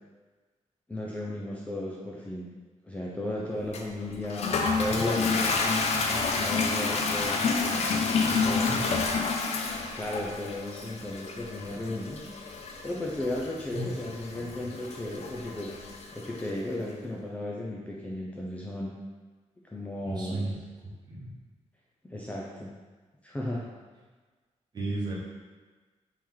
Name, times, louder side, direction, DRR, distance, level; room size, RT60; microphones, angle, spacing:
voice 1, 0.9-2.5 2.8-4.5 4.8-8.7 9.8-12.3 12.8-15.7 16.1-18.9 19.7-20.5 22.0-22.7 23.2-23.6, left 1 dB, 10° left, -4 dB, 0.4 m, -35 dB
Toilet flush, 3.7-16.5, left 4 dB, 60° left, 0.5 m, -29 dB
voice 2, 8.3-8.8 13.7-13.9 14.3-14.5 20.1-20.5 21.1-21.3 24.7-25.2, right 2 dB, 35° right, -5 dB, 1.0 m, -34 dB
4.3 x 3.1 x 3.7 m, 1.4 s
wide cardioid pair, 165°, 12 cm